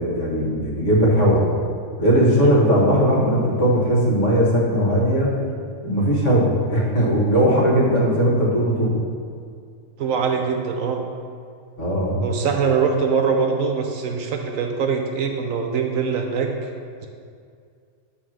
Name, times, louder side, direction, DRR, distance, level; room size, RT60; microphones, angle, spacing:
voice 1, 0.0-1.4 2.0-5.3 5.8-9.0 11.8-12.3, equal, 55° left, -5 dB, 1.9 m, -18 dB
voice 2, 10.0-11.0 12.2-16.5 17.0-17.1, right 5 dB, 70° right, 3 dB, 1.0 m, -23 dB
7.5 x 3.4 x 6.3 m, 2.2 s
omnidirectional pair, 1.5 m